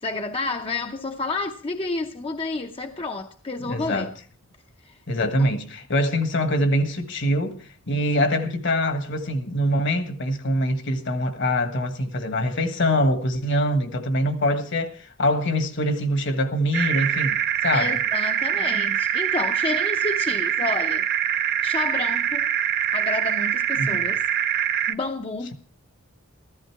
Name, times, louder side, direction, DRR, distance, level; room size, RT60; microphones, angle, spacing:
voice 1, 0.0-4.1 4.8-5.0 5.4-5.5 17.7-21.1 21.6-22.5 22.9-24.2 24.9-25.5, left 3 dB, 25° left, 0.6 m, -30 dB
voice 2, 3.6-4.1 5.1-18.0 23.8-24.0, equal, 60° left, 1.5 m, -24 dB
sound 1, 16.7-24.9, right 9 dB, 45° right, 0.6 m, -24 dB
14.5 x 13.0 x 4.6 m
head